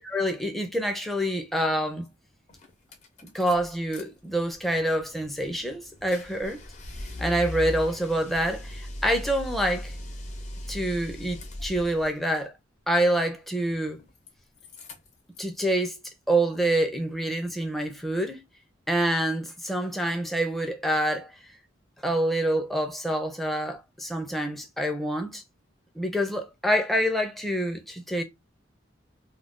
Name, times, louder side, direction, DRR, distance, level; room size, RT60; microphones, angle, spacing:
voice 1, 0.0-2.1 3.2-6.6 7.2-9.9 10.7-12.5 12.9-14.0 15.4-16.0 16.3-18.4 18.9-21.3 22.0-25.4 26.0-28.2, right 1 dB, ahead, 0.5 m, -26 dB
sound 1, 2.1-2.2 2.5-4.0 4.4-12.1 13.6-14.3 14.6-15.6, left 1 dB, 40° left, 0.7 m, -39 dB
2.4 x 2.2 x 3.6 m
head